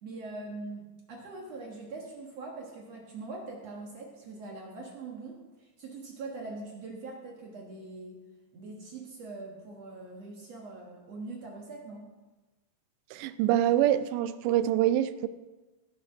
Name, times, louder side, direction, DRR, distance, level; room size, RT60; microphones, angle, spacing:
voice 1, 0.0-8.2 8.5-12.1, right 3 dB, 65° right, -1 dB, 1.6 m, -42 dB
voice 2, 13.1-15.3, right 12 dB, 85° right, 13 dB, 2.8 m, -25 dB
17.5 x 6.3 x 5.6 m, 1.2 s
omnidirectional pair, 5.1 m